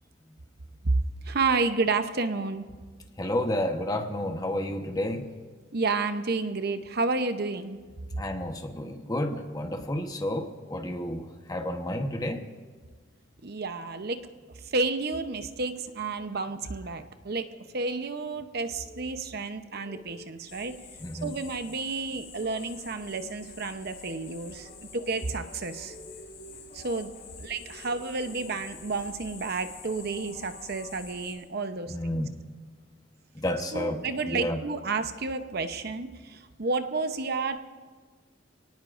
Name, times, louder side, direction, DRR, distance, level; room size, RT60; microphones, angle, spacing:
voice 1, 1.2-2.7 5.7-7.8 13.4-14.3 14.7-17.5 17.7-20.8 21.2-25.9 26.7-27.1 27.4-32.0 33.7-37.6, right 3 dB, 55° right, 9 dB, 0.9 m, -30 dB
voice 2, 3.2-5.3 8.2-12.4 18.9-19.0 19.8-20.2 21.0-21.3 25.9-26.2 27.3-27.4 31.9-32.4 33.3-34.6, left 1 dB, 20° left, 5 dB, 1.2 m, -31 dB
sound 1, 20.5-31.3, left 4 dB, 45° left, 6.8 m, -46 dB
28.0 x 18.5 x 2.6 m, 1.4 s
head